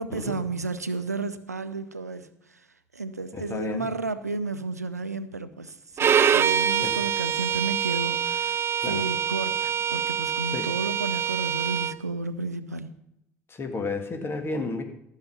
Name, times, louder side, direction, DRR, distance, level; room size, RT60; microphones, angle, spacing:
voice 1, 0.0-2.3 2.9-8.6 8.9-12.9, right 3 dB, 90° right, 0.5 m, -32 dB
voice 2, 3.3-3.9 6.8-6.9 8.8-9.1 10.5-10.7 13.5-14.8, left 3 dB, 30° left, 1.8 m, -32 dB
Bowed string instrument, 6.0-12.0, right 8 dB, 30° right, 0.4 m, -25 dB
14.0 x 6.5 x 5.8 m
figure-of-eight pair, 65°, 8 cm